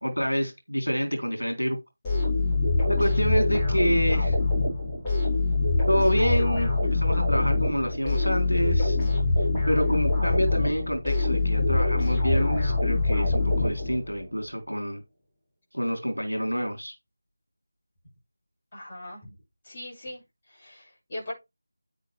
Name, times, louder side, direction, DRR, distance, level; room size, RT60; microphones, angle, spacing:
voice 1, 0.0-1.8 2.9-4.4 5.9-9.0 9.7-15.0 15.7-16.9, equal, 85° left, 3.8 m, -27 dB
sound 1, 2.0-14.3, left 2 dB, 10° left, 5.2 m, -24 dB
voice 2, 18.7-19.3 19.6-20.2 20.5-21.3, left 1 dB, 30° left, 7.0 m, -40 dB
9.9 x 9.0 x 3.5 m
figure-of-eight pair, 165°, 0 cm